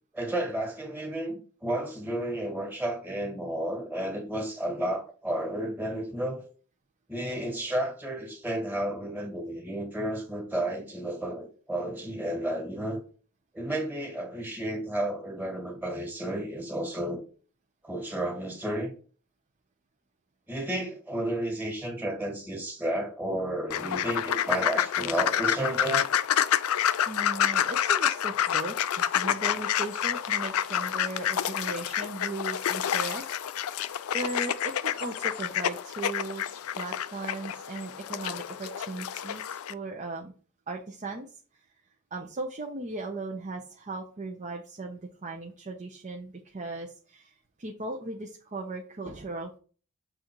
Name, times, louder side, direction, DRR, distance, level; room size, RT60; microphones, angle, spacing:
voice 1, 0.1-6.4 7.1-13.0 13.5-17.2 17.8-18.9 20.5-26.1, right 1 dB, 10° right, 1.6 m, -32 dB
sound 1, 23.7-39.7, left 10 dB, 75° left, 0.4 m, -28 dB
voice 2, 27.1-33.3 33.6-40.3 40.7-41.3 42.1-49.6, right 2 dB, 35° right, 0.7 m, -37 dB
6.8 x 3.8 x 4.5 m
head